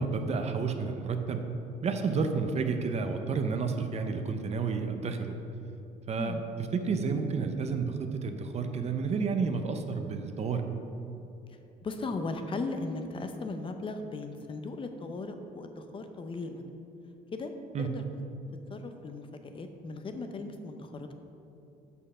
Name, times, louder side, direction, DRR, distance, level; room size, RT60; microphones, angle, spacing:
voice 1, 0.0-1.4 1.8-5.3 6.1-6.4 6.7-10.6 17.7-17.9, right 5 dB, 40° right, 6 dB, 0.6 m, -30 dB
voice 2, 11.8-16.6 17.3-17.5 17.8-18.0 18.7-21.1, left 3 dB, 30° left, 7 dB, 0.6 m, -37 dB
6.3 x 5.5 x 5.5 m, 2.7 s
cardioid pair, 110°, 17 cm